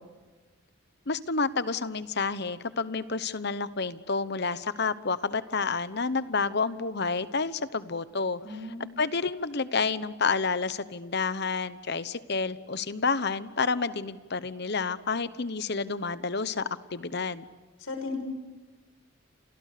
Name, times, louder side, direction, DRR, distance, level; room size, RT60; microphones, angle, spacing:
voice 1, 1.1-8.6 9.0-17.4, left 4 dB, 55° left, 15 dB, 1.1 m, -29 dB
voice 2, 8.4-8.9 17.8-18.2, left 3 dB, 80° left, 6 dB, 6.6 m, -36 dB
29.5 x 27.5 x 6.8 m, 1.3 s
head